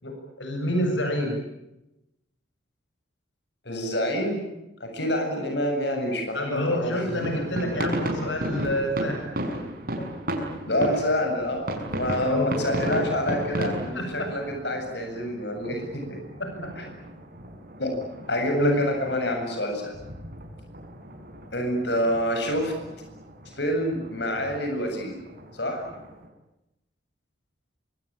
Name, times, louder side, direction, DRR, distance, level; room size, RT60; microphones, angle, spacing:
voice 1, 0.0-1.3 6.3-9.2 12.2-12.5 12.9-13.0 13.9-14.3 16.4-16.7 18.5-18.8, left 1 dB, 80° left, 4 dB, 7.7 m, -28 dB
voice 2, 3.6-4.5 4.8-7.0 10.0-10.1 10.7-16.2 16.8-16.9 17.8-17.9 18.3-19.9 21.5-22.7 23.6-25.2 25.5-25.8, equal, 65° left, 3 dB, 7.8 m, -27 dB
sound 1, 6.6-26.3, right 1 dB, 50° right, 6.4 m, -35 dB
25.5 x 25.0 x 8.9 m, 0.91 s
head